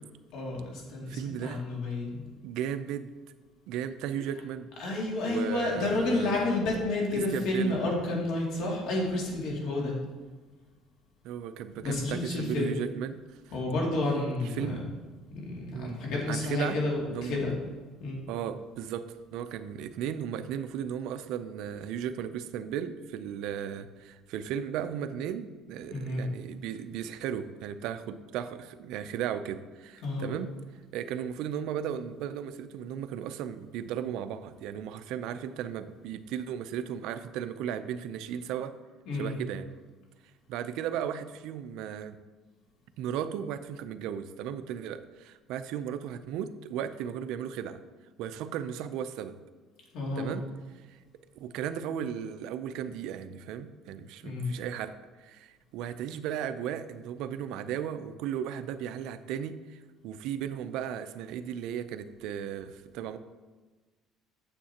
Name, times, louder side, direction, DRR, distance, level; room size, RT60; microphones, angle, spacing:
voice 1, 0.3-2.2 4.8-10.0 11.8-12.7 13.5-14.7 15.4-17.5 18.0-18.2 25.9-26.2 30.0-30.3 39.1-39.3 49.9-50.3 54.2-54.5, left 2 dB, 70° left, -2 dB, 2.4 m, -30 dB
voice 2, 1.1-1.6 2.4-3.1 3.7-4.7 5.3-6.6 7.3-7.8 11.2-13.2 13.5-13.6 14.4-14.9 15.7-17.4 18.3-30.5 30.9-38.8 39.1-39.7 40.5-42.2 43.0-47.8 48.2-49.4 50.2-50.4 50.9-51.0 51.4-63.2, right 9 dB, 75° right, 10 dB, 0.4 m, -36 dB
8.9 x 7.3 x 2.9 m, 1.3 s
cardioid pair, 125°, 0 cm